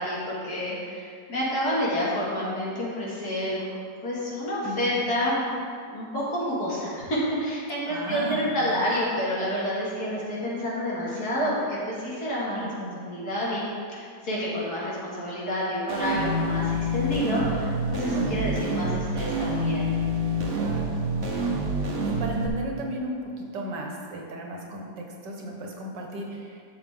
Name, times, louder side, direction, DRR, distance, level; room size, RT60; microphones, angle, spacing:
voice 1, 0.0-3.7 4.0-5.4 5.9-13.6 13.9-19.9, equal, 60° left, -7 dB, 2.8 m, -29 dB
voice 2, 4.6-5.0 7.8-8.9 10.1-10.3 12.6-13.0 18.1-18.6 20.5-21.0 22.0-26.6, right 1 dB, 80° right, 0 dB, 2.0 m, -35 dB
sound 1, 15.9-22.5, equal, 45° right, 1.4 m, -27 dB
12.0 x 7.1 x 3.8 m, 2.1 s
omnidirectional pair, 1.9 m